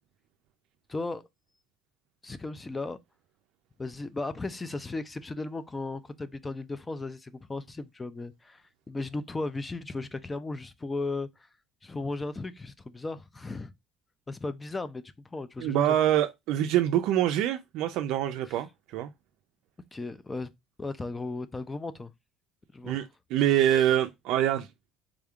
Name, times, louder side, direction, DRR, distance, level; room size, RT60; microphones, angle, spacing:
voice 1, 0.9-1.3 2.2-3.0 3.8-11.5 11.8-13.7 14.3-15.0 15.3-16.0 18.5-18.6 19.9-20.5 20.8-22.1 22.7-23.0 23.5-23.9, left 3 dB, 20° left, 0.4 m, -36 dB
voice 2, 15.6-19.1 22.8-23.1 23.3-24.7, right 11 dB, 75° right, 0.3 m, -25 dB
3.6 x 3.5 x 2.3 m
supercardioid pair, 105°, 0 cm